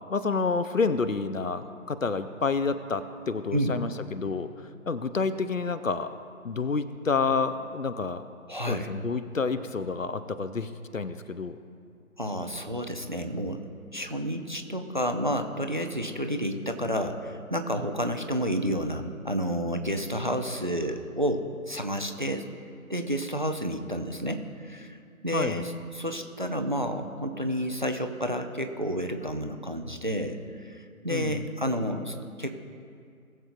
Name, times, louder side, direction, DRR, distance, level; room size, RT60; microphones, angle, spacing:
voice 1, 0.1-4.5 4.9-6.1 6.4-8.3 8.7-11.6 25.3-25.7 31.1-31.4, left 4 dB, 65° left, 12 dB, 0.8 m, -29 dB
voice 2, 8.5-8.9 12.2-13.7 13.9-22.5 22.9-25.0 25.2-32.5, equal, 35° right, 7 dB, 0.6 m, -30 dB
20.0 x 7.4 x 2.6 m, 2.3 s
figure-of-eight pair, 160°, 43 cm